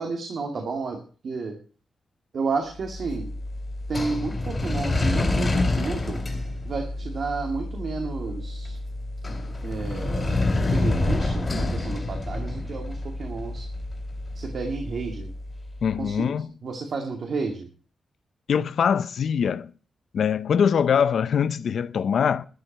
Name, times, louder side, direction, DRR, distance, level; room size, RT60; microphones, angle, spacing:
voice 1, 0.0-1.6 2.3-3.3 3.9-6.2 6.6-8.8 9.6-13.6 14.3-15.3 16.0-16.3 16.6-17.7, right 4 dB, 65° right, 2.5 m, -31 dB
sound 1, 2.8-15.9, left 2 dB, 25° left, 3.0 m, -28 dB
voice 2, 15.8-16.5 18.5-19.7 20.1-22.5, left 7 dB, 75° left, 0.6 m, -23 dB
13.0 x 7.7 x 8.0 m
wide cardioid pair, 125°, 0 cm